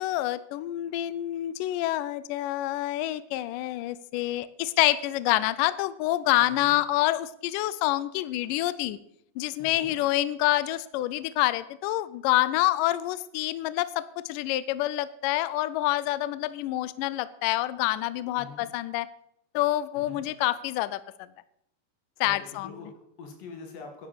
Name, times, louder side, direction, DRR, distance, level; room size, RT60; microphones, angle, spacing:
voice 1, 0.0-9.0 9.4-19.1 19.5-21.0 22.2-22.7, left 15 dB, 85° left, 16 dB, 1.9 m, -27 dB
voice 2, 6.4-6.8 9.6-10.0 18.4-18.7 20.0-20.2 22.2-22.3 22.6-24.1, left 4 dB, 65° left, 4 dB, 3.6 m, -44 dB
11.0 x 10.5 x 6.2 m, 0.76 s
omnidirectional pair, 4.4 m